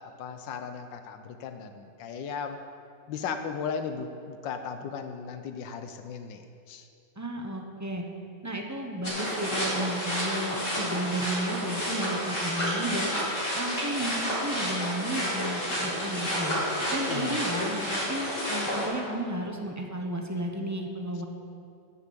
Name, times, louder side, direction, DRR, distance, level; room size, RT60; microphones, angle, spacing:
voice 1, 0.0-2.6 3.1-6.4 6.7-6.9 17.1-17.7, left 6 dB, 85° left, 7 dB, 1.5 m, -36 dB
voice 2, 7.2-8.0 8.4-13.1 13.5-16.6 16.9-21.3, right 1 dB, 10° right, 2 dB, 0.9 m, -33 dB
sound 1, 9.0-18.8, equal, 45° left, 4.0 m, -30 dB
13.5 x 7.1 x 8.2 m, 2.4 s
omnidirectional pair, 1.9 m